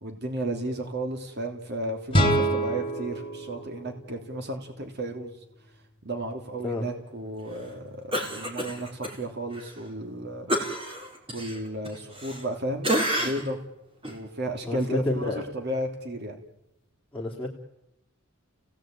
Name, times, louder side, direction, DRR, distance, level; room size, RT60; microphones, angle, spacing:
voice 1, 0.0-5.3 6.0-10.5 11.3-12.9 13.2-13.6 14.1-16.4, right 1 dB, 50° right, 4 dB, 3.1 m, -33 dB
sound 1, 2.1-5.1, right 1 dB, 25° left, 2.9 m, -27 dB
Cough, 8.1-9.2 9.5-9.7 10.5-12.5 12.8-13.6 14.0-14.2, right 1 dB, 25° right, 4.5 m, -29 dB
voice 2, 14.6-15.4 17.1-17.5, left 1 dB, 5° left, -4 dB, 3.3 m, -29 dB
30.0 x 18.0 x 9.1 m, 0.89 s
head